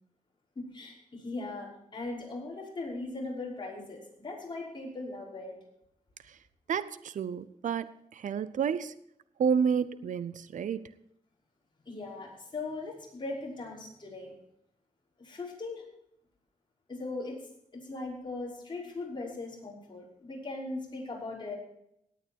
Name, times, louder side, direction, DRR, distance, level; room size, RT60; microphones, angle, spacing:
voice 1, 0.6-5.6 11.9-14.3 15.2-15.8 16.9-17.3 17.8-21.6, left 2 dB, 35° left, 5.6 m, -39 dB
voice 2, 6.7-8.9 9.4-10.8, right 7 dB, 75° right, 0.6 m, -30 dB
18.0 x 9.2 x 4.5 m
wide cardioid pair, 95°, 13 cm